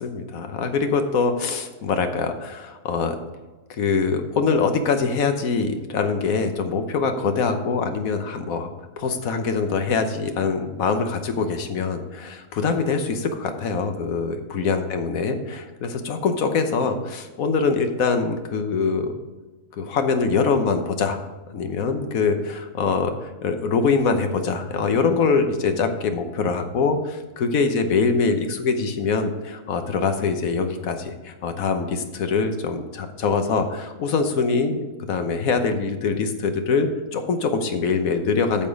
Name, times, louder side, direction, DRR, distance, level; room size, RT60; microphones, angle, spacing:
voice 1, 0.0-3.1 3.7-8.7 9.0-19.1 19.8-21.2 21.5-38.7, left 4 dB, 85° left, 7 dB, 1.4 m, -23 dB
8.8 x 6.7 x 5.2 m, 1.2 s
omnidirectional pair, 1.4 m